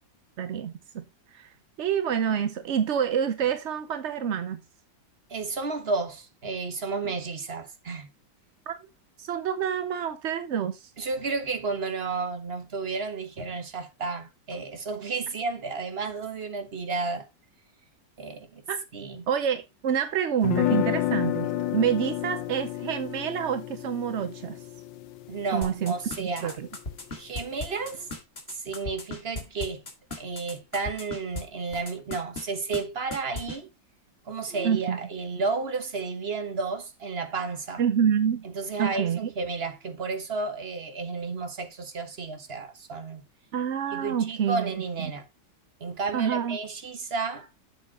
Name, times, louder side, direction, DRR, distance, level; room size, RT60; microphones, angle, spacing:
voice 1, 0.4-1.0 1.3-1.5 1.8-4.6 8.7-8.8 9.2-10.9 18.7-18.8 19.3-24.6 25.5-25.9 26.2-26.7 34.6-35.0 37.8-38.5 38.8-39.3 43.5-44.7 45.0-45.1 46.1-46.6, right 8 dB, 60° right, 0.7 m, -27 dB
voice 2, 5.3-8.1 11.0-17.3 18.2-18.6 18.9-19.3 25.3-26.6 27.1-28.1 28.5-29.8 30.2-33.7 34.2-37.8 38.4-43.2 43.9-45.3 45.8-47.5, right 4 dB, 35° right, 1.5 m, -32 dB
sound 1, 20.4-26.4, left 14 dB, 80° left, 1.4 m, -30 dB
sound 2, 25.6-31.4 31.7-32.4 32.7-32.8 33.1-33.6, left 2 dB, 35° left, 2.4 m, -35 dB
7.5 x 7.4 x 4.1 m
omnidirectional pair, 2.0 m